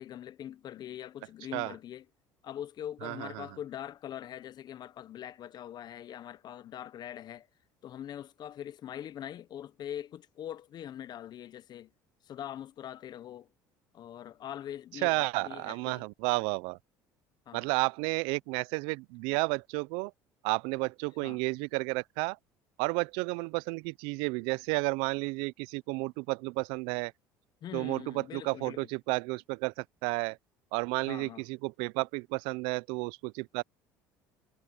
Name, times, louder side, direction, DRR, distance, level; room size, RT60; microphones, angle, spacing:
voice 1, 0.0-2.0 2.4-7.5 7.8-11.9 12.2-13.5 13.9-16.1 17.5-17.7 21.2-21.4 27.6-28.8 31.1-31.4, left 10 dB, 50° left, 1.0 m, -42 dB
voice 2, 3.0-3.5 15.0-16.8 17.5-20.1 20.4-22.4 22.8-27.1 27.7-30.4 30.7-33.6, right 28 dB, 80° right, 0.5 m, -32 dB
supercardioid pair, 80°, 9 cm